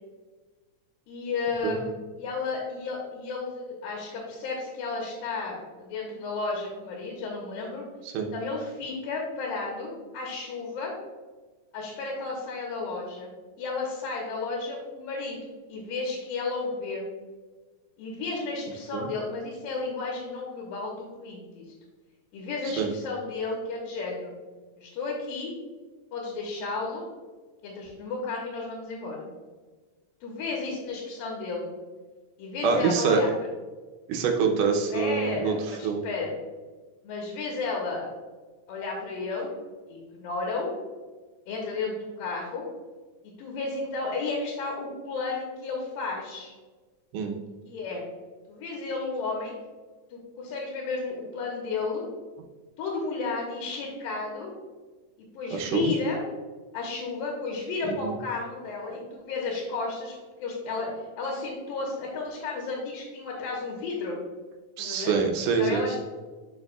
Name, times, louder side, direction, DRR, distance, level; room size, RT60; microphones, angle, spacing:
voice 1, 1.1-7.8 8.3-10.9 11.7-17.0 18.0-21.7 22.3-24.3 24.8-25.5 26.1-27.1 27.6-29.3 30.2-31.7 32.4-33.3 34.9-36.3 37.0-38.1 38.7-39.5 39.9-40.7 41.5-42.7 43.4-46.5 47.7-48.0 48.5-49.6 50.1-52.0 52.8-54.5 55.2-56.2 56.7-60.9 61.2-64.2 64.8-65.1 65.6-66.0, left 3 dB, 85° left, -2 dB, 2.8 m, -33 dB
voice 2, 32.6-33.2 34.1-35.5 35.8-36.0 47.1-47.4 55.5-55.9 57.9-58.1 64.8-65.9, right 5 dB, 75° right, 2 dB, 2.2 m, -25 dB
11.0 x 4.8 x 2.3 m, 1.3 s
omnidirectional pair, 4.0 m